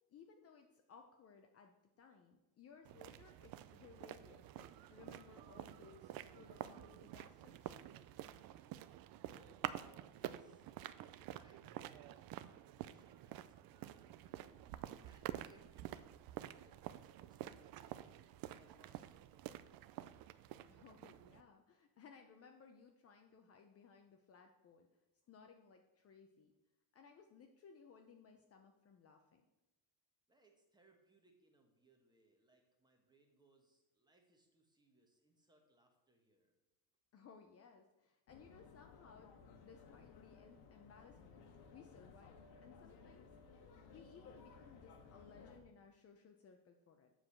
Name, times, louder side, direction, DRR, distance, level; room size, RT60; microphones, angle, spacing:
voice 1, 0.1-7.7 20.7-24.9 25.3-26.5 26.9-29.4 37.1-39.3 39.6-43.3 43.9-47.1, left 5 dB, 35° left, 4 dB, 0.6 m, -62 dB
sound 1, 2.8-21.4, right 13 dB, 55° right, 0.5 m, -49 dB
voice 2, 9.3-10.6 11.1-14.7 15.0-18.2 18.5-20.0 30.3-36.5, right 2 dB, 10° right, 2 dB, 1.2 m, -72 dB
sound 2, 38.3-45.6, left 5 dB, 55° left, 1.4 m, -59 dB
7.6 x 4.8 x 7.2 m, 1.0 s
cardioid pair, 160°, 45 cm